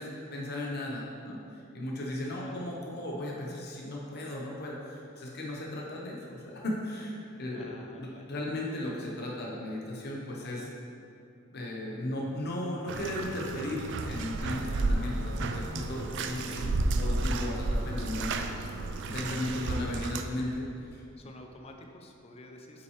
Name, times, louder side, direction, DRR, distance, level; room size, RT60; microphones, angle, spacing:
voice 1, 0.0-1.4 1.7-10.7 11.5-21.0, left 1 dB, 55° left, -3 dB, 1.0 m, -36 dB
voice 2, 2.3-2.8 7.5-8.3 21.2-22.8, left 1 dB, 30° left, 3 dB, 0.6 m, -50 dB
Bathtub (filling or washing), 12.9-20.2, right 2 dB, 60° right, 0.4 m, -32 dB
7.7 x 5.6 x 3.2 m, 2.6 s
head